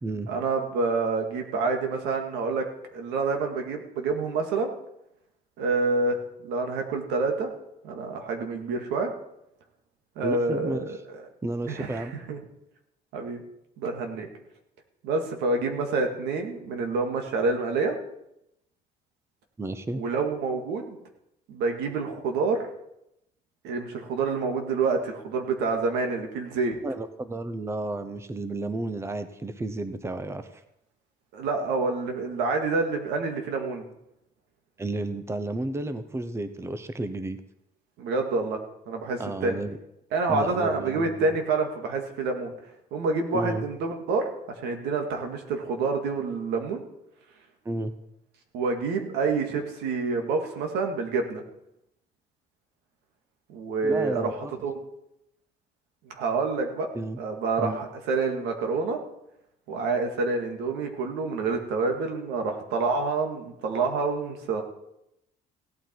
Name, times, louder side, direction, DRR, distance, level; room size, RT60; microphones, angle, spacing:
voice 1, 0.3-2.7 2.9-4.7 5.6-7.5 7.8-9.1 10.2-11.2 11.7-12.4 13.1-13.4 13.8-14.3 15.0-17.9 19.9-21.0 21.5-22.7 23.6-26.8 31.3-33.9 38.0-38.6 38.9-39.6 40.1-42.5 42.9-44.3 44.6-46.8 48.5-51.4 53.5-54.3 54.6-54.7 56.1-56.9 57.2-59.0 59.7-64.6, right 4 dB, 90° right, 4 dB, 2.0 m, -27 dB
voice 2, 10.2-11.0 11.4-12.1 19.6-20.0 26.8-30.6 34.8-37.4 39.2-39.8 40.3-41.3 43.3-43.6 47.6-47.9 53.8-54.5 56.9-57.2 57.6-57.9, right 2 dB, 15° right, 10 dB, 0.9 m, -32 dB
16.5 x 9.0 x 4.6 m, 0.82 s
cardioid pair, 110°, 17 cm